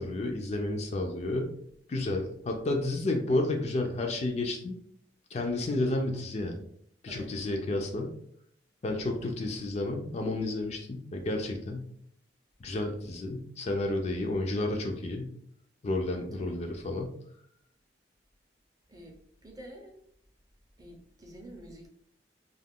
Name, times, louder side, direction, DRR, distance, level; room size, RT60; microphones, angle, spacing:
voice 1, 0.0-1.5 1.9-4.8 5.3-6.6 7.0-8.1 8.8-11.9 12.6-15.3 15.8-17.2, left 2 dB, 35° left, 3 dB, 0.3 m, -31 dB
voice 2, 16.3-16.8 18.9-19.9 20.8-21.9, right 1 dB, 20° right, 0 dB, 0.5 m, -49 dB
2.3 x 2.2 x 3.5 m, 0.66 s
head